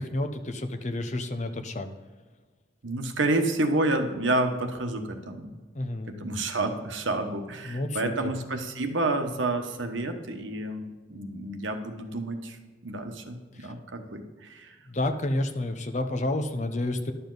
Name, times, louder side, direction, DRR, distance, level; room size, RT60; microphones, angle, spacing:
voice 1, 0.0-1.9 5.7-6.2 7.6-8.3 13.5-13.7 14.9-17.1, left 1 dB, 40° left, 7 dB, 0.8 m, -30 dB
voice 2, 2.8-5.6 6.2-12.6 12.8-14.7, right 2 dB, 85° right, 5 dB, 1.1 m, -29 dB
11.0 x 7.0 x 4.0 m, 1.4 s
head